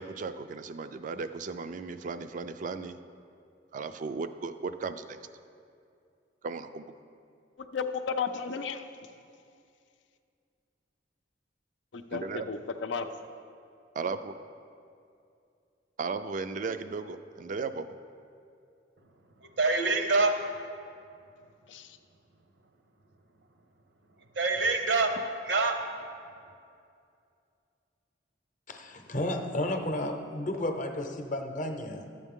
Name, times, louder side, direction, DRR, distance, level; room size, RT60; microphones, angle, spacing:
voice 1, 0.0-3.0 3.7-5.2 6.4-6.9 12.1-12.5 13.9-14.4 16.0-18.0, right 4 dB, 45° right, 10 dB, 0.3 m, -36 dB
voice 2, 7.6-8.9 11.9-13.1 21.7-22.0, left 5 dB, 85° left, 8 dB, 0.5 m, -34 dB
voice 3, 19.6-20.4 24.4-25.2 25.4-25.8, right 3 dB, 80° right, 5 dB, 0.9 m, -25 dB
voice 4, 28.7-32.1, left 1 dB, 45° left, 5 dB, 0.7 m, -32 dB
11.5 x 8.1 x 3.7 m, 2.4 s
head